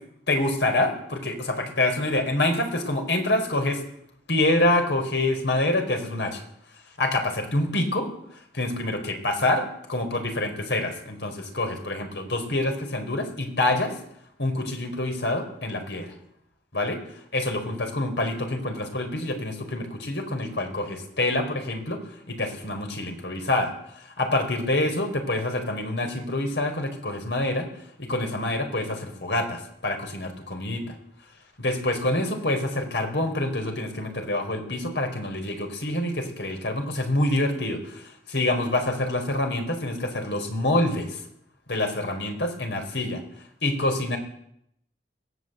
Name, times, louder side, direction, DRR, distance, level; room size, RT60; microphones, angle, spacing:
voice 1, 0.3-3.8 4.3-6.4 7.0-8.1 8.5-14.0 14.4-16.1 16.7-17.0 17.3-27.7 28.0-30.9 31.6-41.2 41.7-43.2 43.6-44.2, left 1 dB, 80° left, 5 dB, 4.5 m, -26 dB
22.0 x 15.5 x 8.1 m, 0.74 s
head